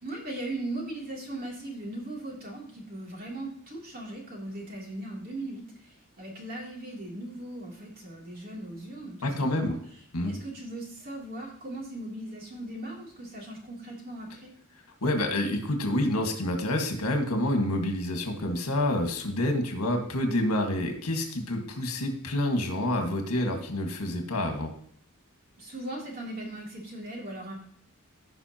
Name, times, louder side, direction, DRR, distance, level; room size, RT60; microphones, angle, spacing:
voice 1, 0.0-9.8 10.2-14.5 25.6-27.5, right 1 dB, 40° right, -2 dB, 3.0 m, -38 dB
voice 2, 9.2-9.8 10.1-10.3 15.0-24.7, left 1 dB, 80° left, 3 dB, 1.7 m, -28 dB
15.5 x 5.6 x 2.9 m, 0.62 s
head